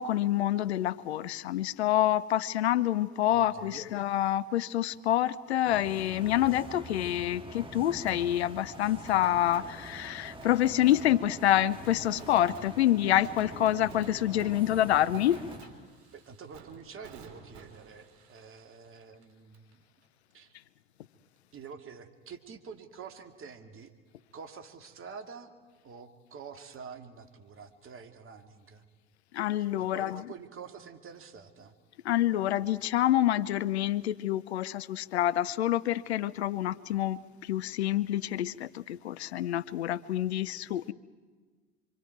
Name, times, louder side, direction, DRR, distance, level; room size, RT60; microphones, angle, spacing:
voice 1, 0.0-15.4 29.3-30.2 32.0-40.9, left 12 dB, 85° left, 17 dB, 0.7 m, -27 dB
voice 2, 3.3-3.9 16.1-19.8 20.3-20.6 21.5-23.9 24.3-25.5 25.8-28.8 29.8-31.7, right 6 dB, 40° right, 5 dB, 2.4 m, -47 dB
sound 1, 5.6-15.6, right 1 dB, 15° right, 2.8 m, -45 dB
Fireworks, 8.1-19.7 20.0-20.1 26.7-26.8, right 5 dB, 60° right, 3.3 m, -54 dB
26.5 x 25.0 x 4.6 m, 1.5 s
hypercardioid pair, 70°, 32 cm